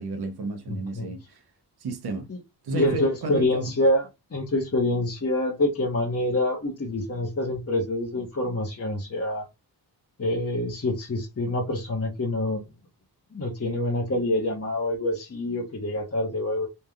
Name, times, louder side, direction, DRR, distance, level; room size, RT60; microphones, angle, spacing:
voice 1, 0.0-1.4 1.8-2.3 2.6-3.7, right 3 dB, 70° right, 0.9 m, -32 dB
voice 2, 0.7-1.1 2.3-2.4 2.7-9.5 10.2-12.6 13.3-16.7, left 1 dB, 35° left, 1.1 m, -26 dB
4.2 x 3.5 x 2.4 m
wide cardioid pair, 150°, 40 cm